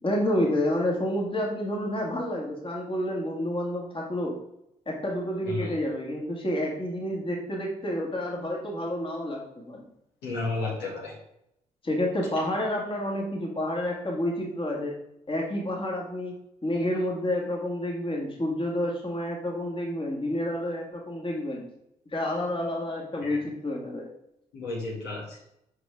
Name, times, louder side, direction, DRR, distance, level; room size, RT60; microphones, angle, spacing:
voice 1, 0.0-4.4 4.9-9.8 11.8-15.0 15.3-21.7 22.1-24.1, left 1 dB, 30° left, -1 dB, 2.0 m, -29 dB
voice 2, 10.2-11.1 23.2-23.4 24.5-25.4, left 3 dB, 70° left, -4 dB, 1.8 m, -32 dB
5.9 x 5.7 x 3.5 m, 0.80 s
figure-of-eight pair, 40°, 18 cm